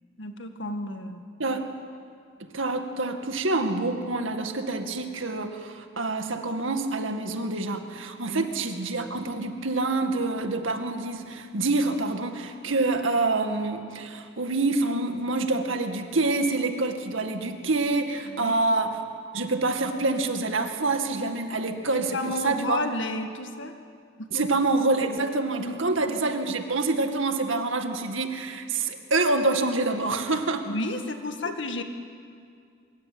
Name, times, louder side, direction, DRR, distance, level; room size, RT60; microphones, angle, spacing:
voice 1, 0.2-1.3 8.2-8.5 18.3-18.5 21.2-21.4 21.9-23.7 24.2-24.5 25.6-25.9 30.7-31.8, left 2 dB, 60° left, 6 dB, 1.9 m, -32 dB
voice 2, 2.4-18.9 19.3-22.8 24.3-30.7, right 3 dB, 70° right, 6 dB, 2.1 m, -27 dB
24.5 x 22.5 x 8.8 m, 2.3 s
head